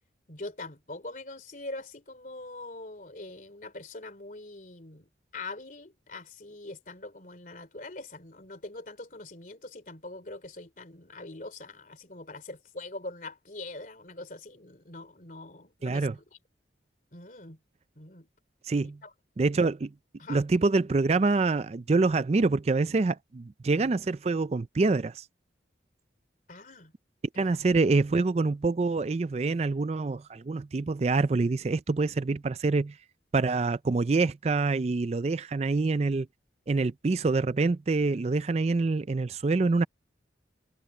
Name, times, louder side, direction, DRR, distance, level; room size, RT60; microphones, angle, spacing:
voice 1, 0.3-16.2 17.1-17.6 17.9-18.3 18.8-19.1 20.2-20.4 26.5-26.9 27.3-27.6, left 2 dB, 45° left, 3.2 m, -43 dB
voice 2, 15.8-16.2 18.7-19.0 19.4-19.9 20.3-25.2 27.4-32.9 33.3-36.3 36.7-39.8, right 3 dB, 35° right, 0.4 m, -26 dB
head